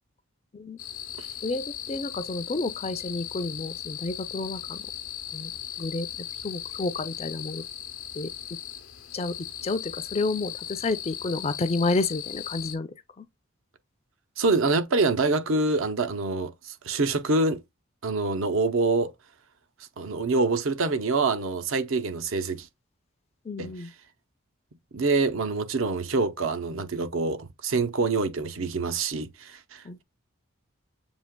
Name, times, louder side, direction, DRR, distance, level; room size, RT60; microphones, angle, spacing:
sound 1, 0.8-12.8, left 10 dB, 85° left, 0.7 m, -38 dB
voice 1, 1.4-4.9 5.3-5.5 5.8-7.7 8.1-8.3 9.1-9.4 9.6-13.2 23.4-23.9 29.8-30.0, left 3 dB, 30° left, 0.4 m, -30 dB
voice 2, 14.4-17.6 18.0-19.1 20.0-22.7 23.6-23.7 24.9-30.0, right 3 dB, 70° right, 0.7 m, -26 dB
7.2 x 2.8 x 2.2 m
head